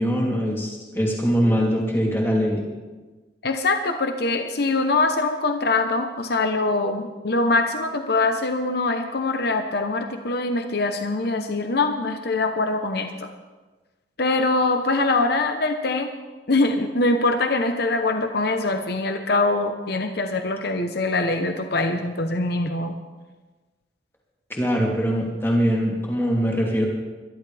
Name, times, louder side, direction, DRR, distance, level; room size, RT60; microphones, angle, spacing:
voice 1, 0.0-2.6 24.5-26.9, equal, 15° left, -3 dB, 3.1 m, -22 dB
voice 2, 3.4-13.3 14.2-16.1 16.5-23.0, left 2 dB, 60° left, 6 dB, 1.0 m, -23 dB
23.0 x 12.0 x 3.5 m, 1.3 s
head